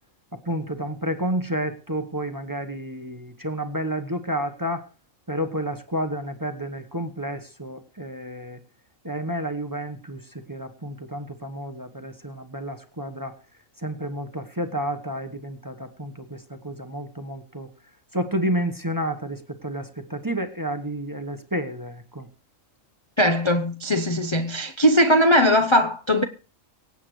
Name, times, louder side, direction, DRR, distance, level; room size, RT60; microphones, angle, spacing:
voice 1, 0.3-4.9 5.3-8.6 9.0-13.3 13.8-17.7 18.1-22.3, equal, 15° right, 1.0 m, -30 dB
voice 2, 23.2-26.2, equal, 25° left, 0.7 m, -19 dB
24.5 x 8.4 x 3.1 m
omnidirectional pair, 1.4 m